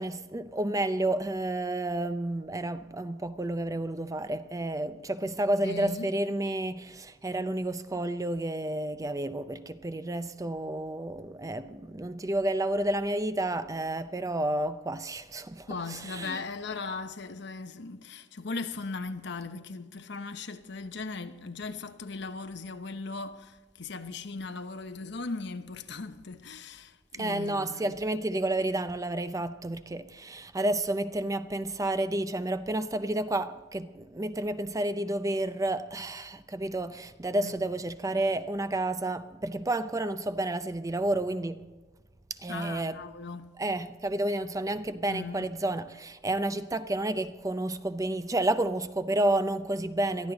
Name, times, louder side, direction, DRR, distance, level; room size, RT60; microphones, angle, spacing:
voice 1, 0.0-16.4 27.2-41.6 42.4-43.0 43.6-50.3, right 1 dB, 20° right, 0.6 m, -30 dB
voice 2, 5.6-6.1 15.7-28.0 37.4-37.5 42.5-43.5 45.1-45.5, left 3 dB, 65° left, 1.0 m, -38 dB
22.5 x 14.0 x 4.0 m
head